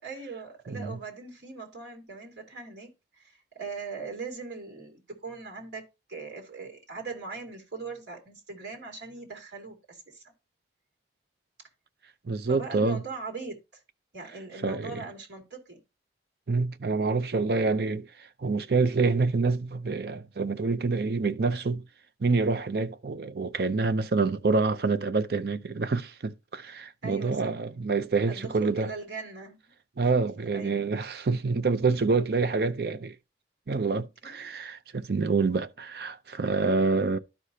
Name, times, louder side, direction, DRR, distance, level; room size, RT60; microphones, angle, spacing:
voice 1, 0.0-10.3 12.5-13.8 14.1-15.8 27.0-27.6 28.2-29.6 30.5-30.9 34.2-34.5 36.6-37.0, right 4 dB, 90° right, 2.5 m, -40 dB
voice 2, 0.7-1.0 12.2-13.0 14.6-15.0 16.5-18.1 18.4-21.8 22.2-28.9 30.0-33.2 33.7-37.2, right 4 dB, 60° right, 0.5 m, -27 dB
12.0 x 4.9 x 2.8 m
head